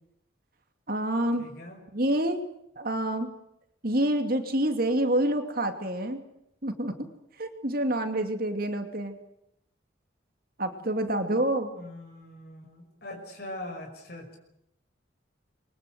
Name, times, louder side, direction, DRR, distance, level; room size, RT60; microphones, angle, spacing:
voice 1, 0.9-1.4 1.9-2.4 2.8-3.3 3.8-6.2 6.6-7.1 7.4-9.2 10.6-11.7, right 1 dB, 50° right, 6 dB, 2.7 m, -27 dB
voice 2, 1.4-1.8 11.7-14.4, left 1 dB, 55° left, 2 dB, 6.0 m, -42 dB
26.0 x 23.5 x 8.0 m, 0.79 s
head